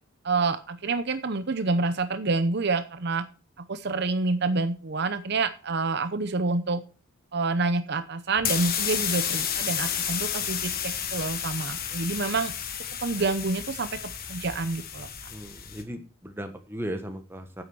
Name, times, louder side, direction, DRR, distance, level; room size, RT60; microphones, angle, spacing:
voice 1, 0.2-3.2 3.7-6.8 7.3-12.5 13.0-14.0 14.3-15.1, right 3 dB, 50° right, 11 dB, 0.8 m, -27 dB
sound 1, 8.4-15.8, left 8 dB, 45° left, 1.6 m, -31 dB
voice 2, 15.3-17.6, equal, 10° right, 6 dB, 1.4 m, -37 dB
9.4 x 7.9 x 6.1 m, 0.33 s
head